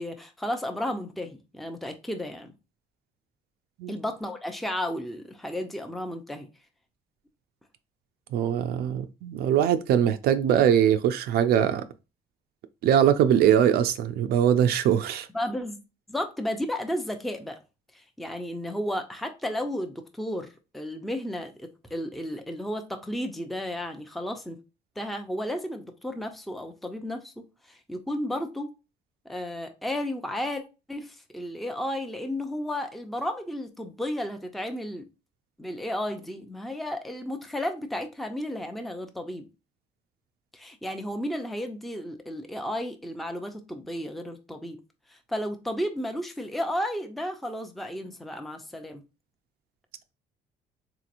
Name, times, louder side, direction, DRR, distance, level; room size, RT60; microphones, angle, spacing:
voice 1, 0.0-2.5 3.9-6.5 15.3-15.8 16.1-17.6 17.9-20.5 20.7-24.6 25.0-28.7 29.3-30.6 30.9-35.1 35.6-39.4 40.5-44.8 45.1-49.0, left 1 dB, ahead, 0.5 m, -33 dB
voice 2, 8.3-11.8 12.8-15.3, right 9 dB, 70° right, 0.4 m, -22 dB
3.9 x 2.8 x 2.5 m
cardioid pair, 110°, 17 cm